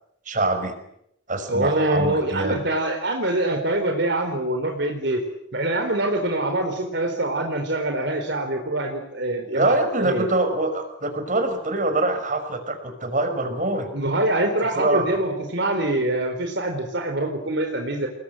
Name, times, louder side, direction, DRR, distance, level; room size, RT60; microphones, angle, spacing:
voice 1, 0.3-0.7 1.3-2.6 9.5-13.9 14.8-15.2, right 2 dB, 40° right, 8 dB, 5.6 m, -24 dB
voice 2, 1.5-5.2 5.5-10.3 13.9-18.1, right 1 dB, 55° right, 4 dB, 4.1 m, -24 dB
29.5 x 22.0 x 9.1 m, 0.78 s
head